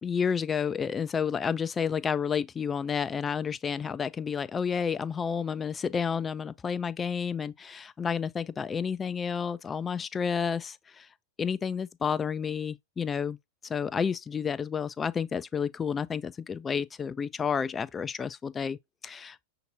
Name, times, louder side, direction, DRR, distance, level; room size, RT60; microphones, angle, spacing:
voice 1, 0.0-11.1 11.4-13.4 13.6-18.8 19.0-19.4, left 6 dB, 20° left, 0.3 m, -30 dB
5.8 x 2.8 x 2.6 m
hypercardioid pair, 100°, 0 cm